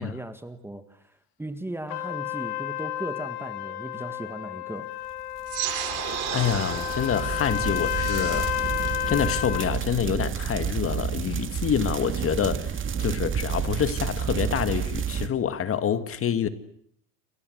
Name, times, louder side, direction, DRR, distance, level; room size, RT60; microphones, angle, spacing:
voice 1, 0.0-4.9, right 1 dB, 5° right, 10 dB, 1.7 m, -37 dB
Trumpet, 1.9-9.7, left 13 dB, 75° left, 2.4 m, -31 dB
sound 1, 5.5-15.3, right 8 dB, 25° right, 2.0 m, -30 dB
sound 2, 5.5-10.5, right 13 dB, 50° right, 4.7 m, -35 dB
voice 2, 6.3-8.5 9.1-12.7 13.0-16.5, left 8 dB, 30° left, 11 dB, 2.0 m, -27 dB
29.5 x 23.5 x 8.0 m, 0.69 s
supercardioid pair, 115°, 46 cm